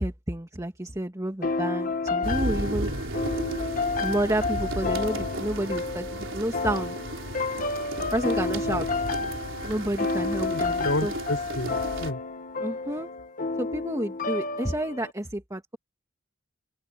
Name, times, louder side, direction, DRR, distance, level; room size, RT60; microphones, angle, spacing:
voice 1, 0.0-2.9 4.0-7.0 8.1-8.9 9.6-11.1 12.6-13.1 13.6-15.8, right 1 dB, 15° right, 2.4 m, -30 dB
sound 1, 1.4-15.1, left 3 dB, 45° left, 1.9 m, -30 dB
sound 2, 2.2-12.1, right 1 dB, 80° right, 4.2 m, -34 dB
voice 2, 10.4-12.2, left 1 dB, 80° left, 7.3 m, -31 dB
open air
head